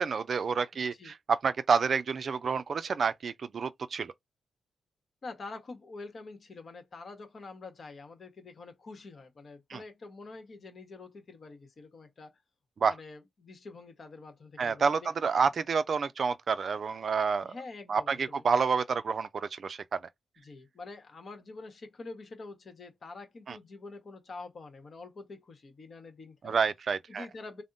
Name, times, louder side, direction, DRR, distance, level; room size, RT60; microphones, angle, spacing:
voice 1, 0.0-4.1 9.7-9.8 12.8-12.9 14.6-17.5 17.9-20.0 23.5-23.6 26.4-27.3, right 5 dB, 55° right, 0.4 m, -29 dB
voice 2, 5.2-12.4 12.8-15.1 15.3-15.5 17.4-18.4 20.4-26.6 27.1-27.6, left 3 dB, 50° left, 1.2 m, -46 dB
3.5 x 2.1 x 2.6 m
cardioid pair, 85°, 0 cm